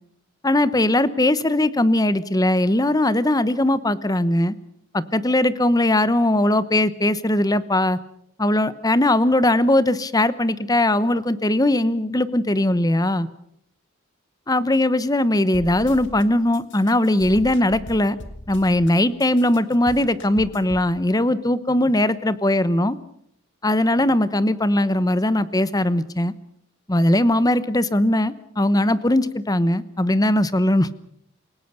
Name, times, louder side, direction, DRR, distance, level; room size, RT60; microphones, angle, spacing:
voice 1, 0.4-4.5 4.9-8.0 8.4-13.3 14.5-18.2 18.5-23.0 23.6-26.3 26.9-30.9, left 1 dB, 20° left, 15 dB, 0.9 m, -20 dB
sound 1, 15.5-16.2 16.5-18.9 19.2-20.9, left 1 dB, 60° left, 2.2 m, -39 dB
28.0 x 18.0 x 6.8 m, 0.73 s
head